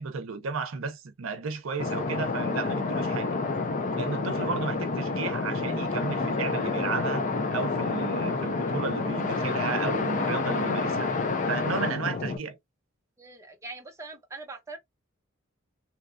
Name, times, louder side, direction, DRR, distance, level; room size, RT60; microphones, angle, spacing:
voice 1, 0.0-3.4 4.0-11.1 11.4-12.6, right 4 dB, 75° right, 0.6 m, -33 dB
sound 1, 1.8-12.4, left 3 dB, 40° left, 0.5 m, -29 dB
voice 2, 13.2-14.8, right 3 dB, 15° right, 0.6 m, -42 dB
2.9 x 2.3 x 2.4 m
head